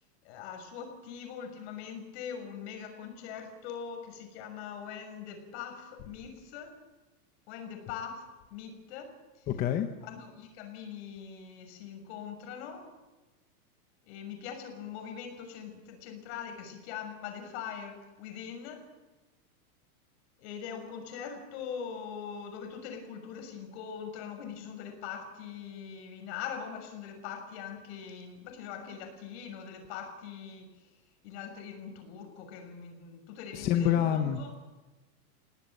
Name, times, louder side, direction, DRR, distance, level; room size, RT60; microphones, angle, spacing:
voice 1, 0.2-6.8 7.5-9.5 10.0-12.9 14.1-18.9 20.4-30.7 31.2-34.5, left 7 dB, 45° left, 6 dB, 6.2 m, -42 dB
voice 2, 9.5-9.9 33.5-34.4, left 10 dB, 20° left, 6 dB, 0.9 m, -27 dB
28.5 x 18.0 x 7.8 m, 1.2 s
supercardioid pair, 170°, 45 cm